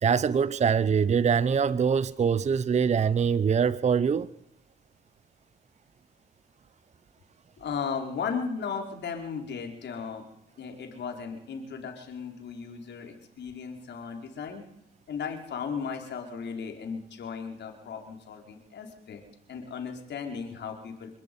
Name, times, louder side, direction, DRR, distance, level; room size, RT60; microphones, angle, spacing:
voice 1, 0.0-4.3, right 6 dB, 35° right, 0.7 m, -24 dB
voice 2, 7.6-10.2 10.6-14.6 15.1-19.2 19.5-21.2, left 6 dB, 60° left, 4.9 m, -36 dB
26.5 x 10.5 x 9.7 m
cardioid pair, 90°, 20 cm